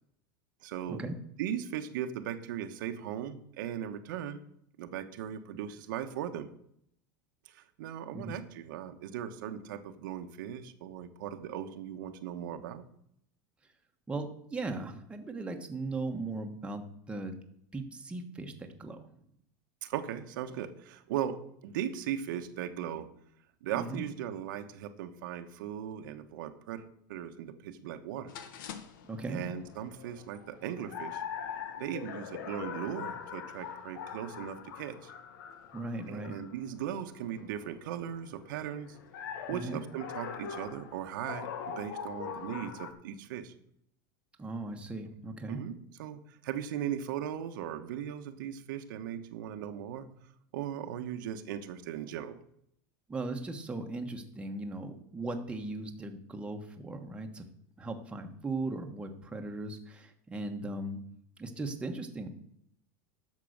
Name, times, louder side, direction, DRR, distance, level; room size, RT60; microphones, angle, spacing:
voice 1, 0.6-1.0 1.4-4.4 4.8-6.5 7.4-12.8 19.8-23.1 23.6-28.3 29.3-31.2 31.8-35.1 36.1-39.0 39.5-43.5 45.5-50.1 50.5-52.4, right 10 dB, 80° right, 7 dB, 1.2 m, -38 dB
voice 2, 14.1-17.4 17.7-19.0 23.7-24.0 29.1-29.4 35.7-36.4 39.5-39.8 44.4-45.6 53.1-57.4 57.8-61.0 61.4-62.3, right 2 dB, 10° right, 3 dB, 1.2 m, -38 dB
sound 1, 28.3-42.9, left 7 dB, 80° left, 1.3 m, -43 dB
10.5 x 6.7 x 6.5 m, 0.71 s
supercardioid pair, 140°, 11 cm